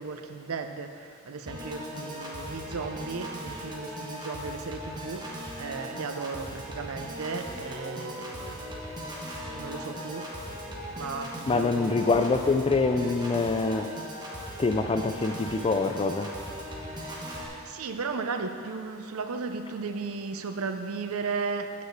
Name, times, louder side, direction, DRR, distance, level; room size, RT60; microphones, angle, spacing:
voice 1, 0.0-8.8 9.5-10.3 11.0-11.9 17.7-21.7, right 4 dB, 80° right, 7 dB, 0.6 m, -35 dB
Piano / Organ, 1.5-17.5, equal, 20° right, 1.2 m, -38 dB
voice 2, 11.5-13.9 14.6-16.3, left 3 dB, 25° left, 7 dB, 0.3 m, -25 dB
8.7 x 4.8 x 6.6 m, 2.7 s
head